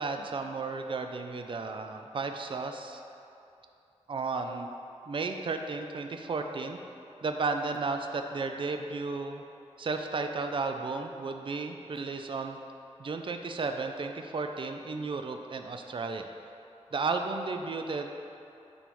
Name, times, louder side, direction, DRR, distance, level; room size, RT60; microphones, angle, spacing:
voice 1, 0.0-3.0 4.1-4.7 5.1-6.8 7.2-9.4 9.8-12.6 13.0-16.3 16.9-18.1, right 4 dB, 50° right, 5 dB, 0.4 m, -33 dB
9.9 x 3.5 x 3.1 m, 2.7 s
wide cardioid pair, 95°, 11 cm